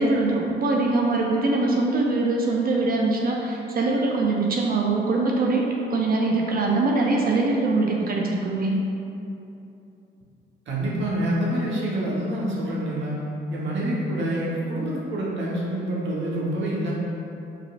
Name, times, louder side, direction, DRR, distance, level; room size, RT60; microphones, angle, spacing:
voice 1, 0.0-8.8, right 3 dB, 50° right, 0 dB, 0.6 m, -23 dB
voice 2, 10.7-13.2 13.5-16.9, right 1 dB, 65° right, -5 dB, 1.3 m, -27 dB
4.8 x 4.4 x 2.5 m, 2.8 s
cardioid pair, 90°, 20 cm